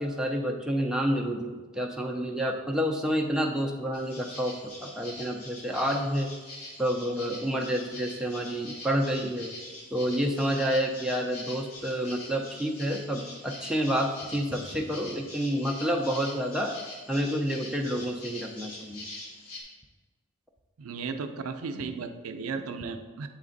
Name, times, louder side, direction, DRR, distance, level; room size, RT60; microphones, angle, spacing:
voice 1, 0.0-4.5 4.8-6.3 6.8-9.5 9.9-16.7 17.1-19.0, equal, 5° right, 0 dB, 0.3 m, -29 dB
sound 1, 3.9-19.6, left 1 dB, 75° left, 1.4 m, -44 dB
voice 2, 20.8-23.3, right 5 dB, 70° right, 7 dB, 0.4 m, -35 dB
7.5 x 3.3 x 3.8 m, 1.4 s
head